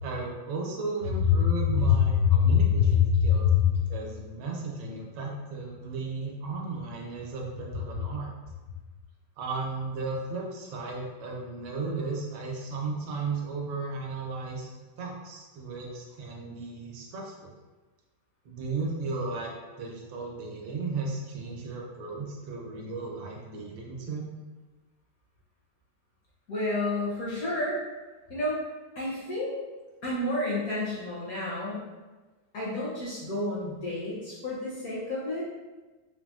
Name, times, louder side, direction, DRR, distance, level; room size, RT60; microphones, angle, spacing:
voice 1, 0.0-3.5 3.9-8.3 9.4-14.7 15.0-17.5 18.4-19.5 19.8-24.2, right 3 dB, 90° right, -1 dB, 1.3 m, -35 dB
voice 2, 1.9-3.6 26.5-27.8 28.3-28.6 29.0-29.5 30.0-31.9 32.5-35.4, left 6 dB, 65° left, -7 dB, 0.9 m, -26 dB
3.8 x 2.0 x 2.3 m, 1.2 s
omnidirectional pair, 2.1 m